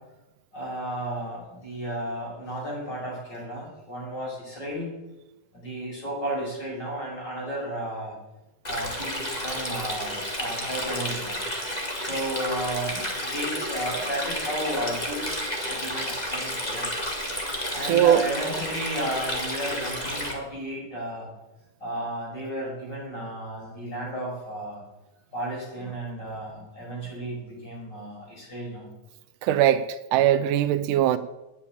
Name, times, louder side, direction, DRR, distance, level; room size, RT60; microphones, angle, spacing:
voice 1, 0.5-4.9 5.5-8.2 8.7-11.4 12.0-16.9 17.7-21.3 21.8-24.8 25.3-28.9, right 1 dB, 30° left, 6.1 m, -33 dB
Stream, 8.6-20.3, equal, 15° left, 1.7 m, -31 dB
voice 2, 17.8-18.2 29.4-31.2, right 11 dB, 85° right, 2.2 m, -21 dB
10.0 x 8.7 x 8.7 m
omnidirectional pair, 3.6 m